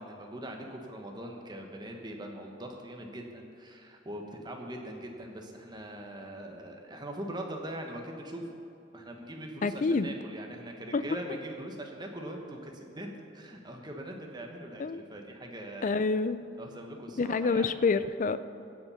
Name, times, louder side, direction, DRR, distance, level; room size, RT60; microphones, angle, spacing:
voice 1, 0.0-8.5 8.9-16.0 16.6-17.8, right 1 dB, 20° right, 2 dB, 1.3 m, -42 dB
voice 2, 9.6-10.1 10.9-11.0 14.8-15.0 15.8-16.4 17.2-18.4, left 4 dB, 40° left, 14 dB, 0.4 m, -27 dB
16.0 x 7.3 x 5.7 m, 2.7 s
head